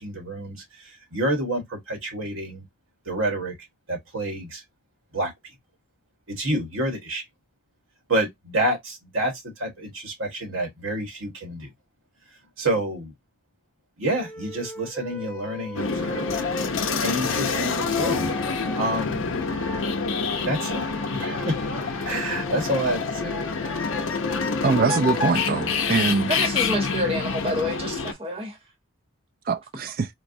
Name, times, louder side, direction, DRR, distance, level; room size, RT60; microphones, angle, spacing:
voice 1, 0.0-2.6 3.0-3.5 3.9-4.6 5.1-5.3 6.3-7.2 8.1-11.7 12.6-13.1 14.0-16.3 17.0-18.4 18.7-19.2 20.4-20.9 21.1-23.4, right 1 dB, 80° right, 1.4 m, -28 dB
Wind instrument woodwind instrument, 14.0-19.9 20.3-25.9, left 1 dB, 5° left, 0.6 m, -39 dB
sound 1, 15.8-28.1, left 5 dB, 75° left, 0.6 m, -27 dB
voice 2, 24.6-26.3 29.5-30.1, right 4 dB, 45° right, 0.4 m, -23 dB
voice 3, 26.3-28.6, equal, 30° right, 0.9 m, -28 dB
4.4 x 2.0 x 2.6 m
head